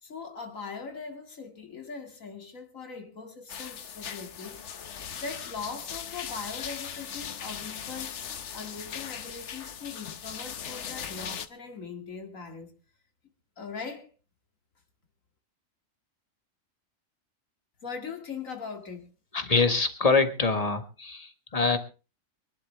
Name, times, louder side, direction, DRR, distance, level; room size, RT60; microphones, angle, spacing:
voice 1, 0.0-4.6 5.2-12.7 13.6-14.1 17.8-19.1, left 5 dB, 90° left, 2.7 m, -40 dB
sound 1, 3.5-11.5, left 8 dB, 65° left, 1.2 m, -39 dB
voice 2, 19.3-21.8, left 4 dB, 30° left, 1.6 m, -25 dB
24.5 x 11.5 x 3.4 m
omnidirectional pair, 1.3 m